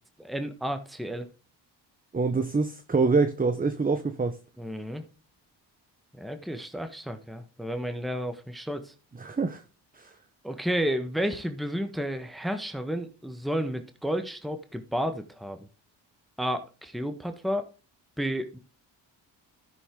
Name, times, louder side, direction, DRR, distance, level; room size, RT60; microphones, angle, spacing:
voice 1, 0.2-1.3 4.6-5.0 6.1-8.9 10.4-15.6 16.4-17.7 18.2-18.6, equal, ahead, 1.4 m, -31 dB
voice 2, 2.1-4.4 9.2-9.6 9.9-10.1, right 4 dB, 15° right, 0.9 m, -25 dB
13.0 x 6.1 x 3.8 m
hypercardioid pair, 45°, 49 cm